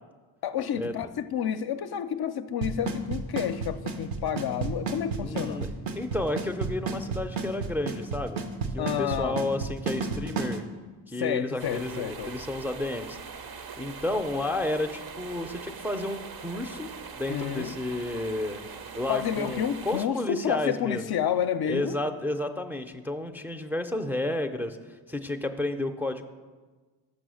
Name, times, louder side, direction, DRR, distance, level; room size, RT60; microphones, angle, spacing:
voice 1, 0.4-5.7 8.8-9.5 11.2-12.3 17.3-17.7 19.1-22.0, left 9 dB, 55° left, 10 dB, 0.5 m, -30 dB
Drum kit / Snare drum / Bass drum, 2.6-10.6, right 5 dB, 80° right, 0.9 m, -30 dB
voice 2, 5.2-8.4 8.7-10.7 11.1-13.5 13.8-18.7 18.9-21.0 21.6-26.2, left 1 dB, 5° right, 5 dB, 0.4 m, -32 dB
sound 1, 11.6-20.1, right 6 dB, 55° right, 0.7 m, -42 dB
6.3 x 6.2 x 6.3 m, 1.4 s
cardioid pair, 65°, 45 cm